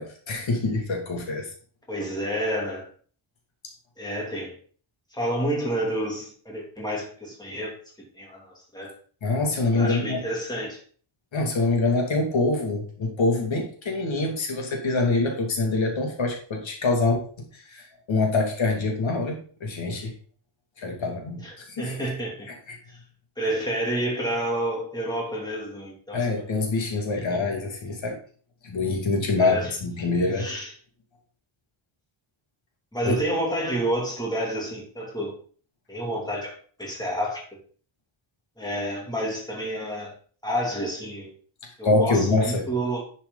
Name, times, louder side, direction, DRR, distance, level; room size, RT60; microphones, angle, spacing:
voice 1, 0.0-1.5 9.2-10.2 11.3-17.2 17.5-20.1 20.8-22.1 22.7-22.8 26.1-28.2 28.6-30.5 33.0-33.2 41.6-42.6, left 3 dB, 65° left, 1 dB, 2.5 m, -25 dB
voice 2, 1.9-2.9 4.0-4.6 5.1-7.8 8.1-8.9 9.7-10.8 21.4-22.5 22.8-23.0 23.4-26.3 29.4-29.7 30.4-30.7 32.9-35.3 35.9-37.4 38.6-40.1 40.4-41.3 41.8-43.0, right 1 dB, 10° left, -3 dB, 2.8 m, -29 dB
10.5 x 6.9 x 3.9 m, 0.43 s
wide cardioid pair, 180°, 49 cm